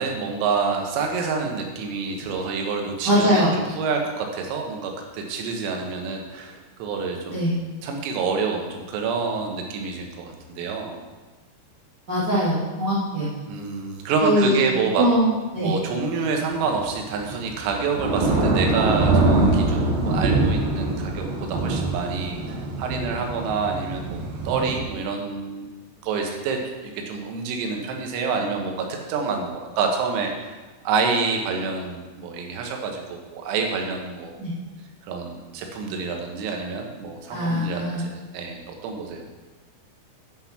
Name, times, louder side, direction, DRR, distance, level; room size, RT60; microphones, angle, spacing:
voice 1, 0.0-7.5 7.8-11.0 13.5-15.1 15.6-25.7 26.0-26.6 26.9-30.6 30.9-34.4 35.1-39.2, right 4 dB, 90° right, 2 dB, 4.0 m, -27 dB
voice 2, 3.0-3.5 7.3-7.6 12.1-13.3 14.2-14.7 15.0-15.7 34.4-34.5 37.3-38.0, equal, 45° right, -9 dB, 1.2 m, -22 dB
Thunder / Rain, 16.5-24.8, right 2 dB, 70° right, 2.1 m, -24 dB
10.0 x 6.0 x 5.8 m, 1.3 s
omnidirectional pair, 5.9 m